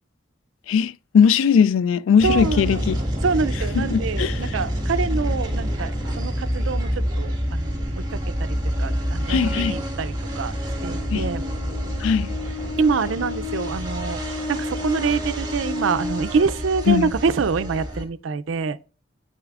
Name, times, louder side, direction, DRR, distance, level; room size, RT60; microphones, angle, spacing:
voice 1, 0.7-3.0 3.8-4.6 9.3-9.8 11.1-11.3 12.0-12.3 16.9-17.1, left 7 dB, 90° left, 0.3 m, -19 dB
sound 1, 2.2-18.0, equal, 20° right, 1.6 m, -27 dB
voice 2, 2.2-2.8 3.2-5.9 6.2-7.8 8.1-10.5 10.8-11.4 12.8-14.2 14.5-18.8, right 5 dB, 85° right, 0.4 m, -25 dB
8.8 x 7.9 x 2.4 m
head